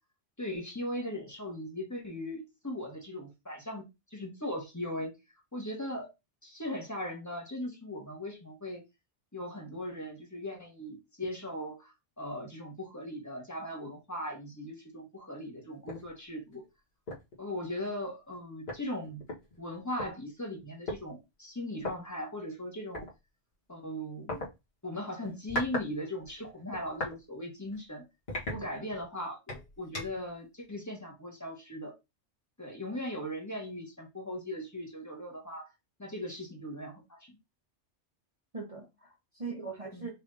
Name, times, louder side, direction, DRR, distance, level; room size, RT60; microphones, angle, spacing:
voice 1, 0.4-5.1 5.5-6.1 6.4-8.8 9.3-16.6 17.4-19.2 19.6-23.1 23.7-24.4 24.8-28.0 28.5-31.9 32.6-35.7 36.0-37.4 39.9-40.1, left 1 dB, 15° left, 1.4 m, -39 dB
sound 1, 15.9-16.1 16.5-16.6 17.1-17.3 18.3-18.4 18.7-20.1 20.9-21.0 21.8-21.9 22.9-23.1 24.3-24.5 25.2-25.9 26.2-27.2 27.6-27.8 28.3-29.1 29.5-30.3, left 1 dB, 60° left, 1.8 m, -37 dB
voice 2, 28.5-28.9 38.5-40.1, right 4 dB, 30° right, 1.2 m, -41 dB
5.7 x 3.4 x 2.7 m
omnidirectional pair, 1.2 m